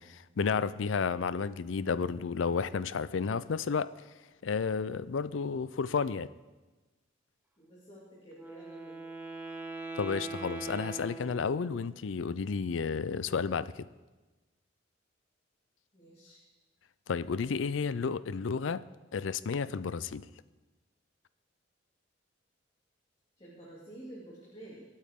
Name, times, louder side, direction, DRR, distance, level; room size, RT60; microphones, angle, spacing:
voice 1, 0.0-3.9 4.4-6.3 10.0-13.9 17.1-18.8 19.1-20.2, left 5 dB, 80° left, 17 dB, 0.5 m, -32 dB
voice 2, 7.6-9.0 15.9-16.4 23.4-24.8, right 1 dB, 30° left, -6 dB, 2.5 m, -50 dB
Wind instrument woodwind instrument, 8.3-11.9, right 3 dB, 10° right, 1.0 m, -41 dB
26.0 x 8.9 x 3.6 m, 1.2 s
head